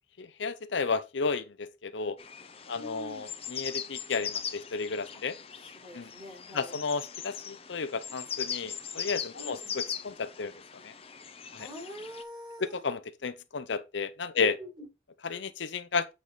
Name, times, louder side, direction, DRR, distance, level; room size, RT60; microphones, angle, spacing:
voice 1, 0.2-2.2 2.7-5.4 5.9-6.1 6.5-10.5 10.8-10.9 11.5-11.7 12.6-14.6 15.2-16.1, left 4 dB, 65° left, 0.6 m, -33 dB
sound 1, 2.2-12.2, left 7 dB, 30° left, 0.7 m, -40 dB
voice 2, 2.7-3.3 5.7-6.8 9.3-9.7 11.6-12.8 14.3-14.9, left 1 dB, 25° right, 4.6 m, -44 dB
8.4 x 4.8 x 3.9 m
head